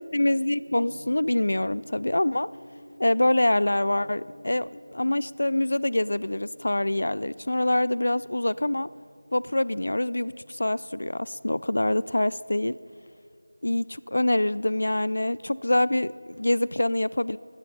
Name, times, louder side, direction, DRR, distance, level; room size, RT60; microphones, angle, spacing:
voice 1, 0.0-2.5 3.0-8.9 9.3-12.8 13.6-17.4, left 1 dB, 70° left, 19 dB, 0.4 m, -25 dB
Gong, 0.7-14.8, equal, 45° right, 2.4 m, -51 dB
16.0 x 13.5 x 5.5 m, 2.4 s
figure-of-eight pair, 175°, 0 cm